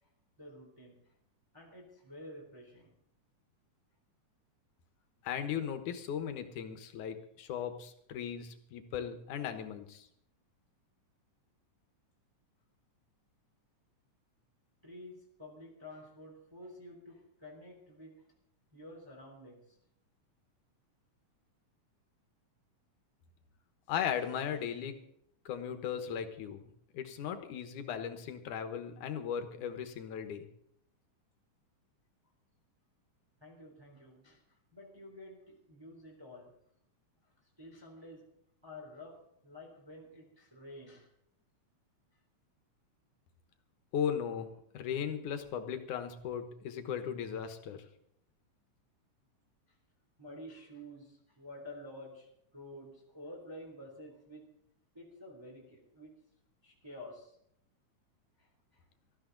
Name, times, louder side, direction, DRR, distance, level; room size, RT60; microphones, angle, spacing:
voice 1, 0.4-1.1 1.5-2.9 14.8-18.2 18.7-19.8 33.4-36.6 37.2-37.3 37.6-38.3 38.6-41.1 50.2-54.5 54.9-56.2 56.6-57.4 58.4-58.8, left 1 dB, 10° right, -1 dB, 3.0 m, -50 dB
voice 2, 5.2-10.1 23.9-25.0 25.5-30.5 43.9-47.8, left 8 dB, 75° left, 8 dB, 2.7 m, -37 dB
19.0 x 13.5 x 3.9 m, 0.70 s
omnidirectional pair, 3.7 m